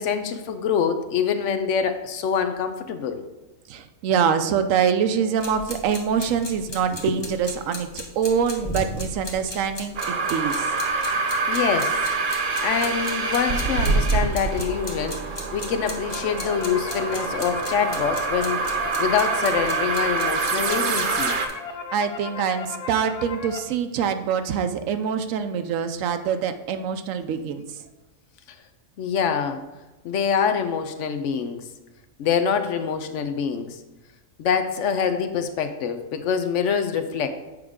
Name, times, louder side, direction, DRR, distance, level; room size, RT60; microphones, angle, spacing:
voice 1, 0.0-3.2 7.1-7.2 11.5-12.0 12.6-15.2 15.5-18.6 19.0-21.3 29.0-29.6 30.0-31.7 32.2-33.8 34.4-37.3, left 7 dB, 70° left, 8 dB, 0.9 m, -25 dB
voice 2, 3.7-10.7 21.9-27.9, right 7 dB, 80° right, 9 dB, 1.0 m, -25 dB
sound 1, 5.4-21.5, left 1 dB, 20° left, 0.9 m, -38 dB
sound 2, 10.0-21.5, right 4 dB, 50° right, 0.7 m, -26 dB
sound 3, 15.9-23.6, left 5 dB, 55° left, 0.4 m, -36 dB
7.8 x 5.0 x 3.6 m, 1.1 s
omnidirectional pair, 1.4 m